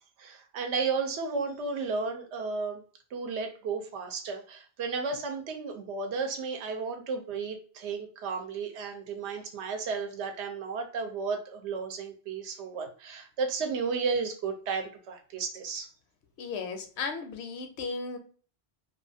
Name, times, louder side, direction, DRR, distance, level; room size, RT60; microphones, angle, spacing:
voice 1, 0.2-2.8 3.1-15.9, right 4 dB, 90° right, 5 dB, 0.9 m, -33 dB
voice 2, 16.4-18.2, left 4 dB, 75° left, 7 dB, 0.8 m, -35 dB
2.4 x 2.3 x 2.5 m, 0.42 s
omnidirectional pair, 1.1 m